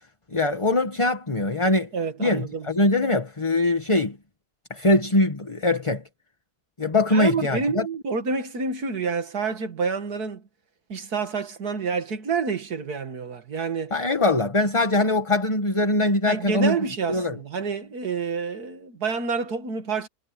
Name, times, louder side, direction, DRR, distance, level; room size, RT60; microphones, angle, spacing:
voice 1, 0.3-1.9 2.2-4.2 4.7-6.0 6.8-7.9 13.9-16.7 17.1-17.4, left 2 dB, 20° left, 1.4 m, -22 dB
voice 2, 1.9-2.7 7.1-10.4 10.9-13.9 16.3-20.1, right 5 dB, 70° right, 2.5 m, -28 dB
omnidirectional pair, 1.7 m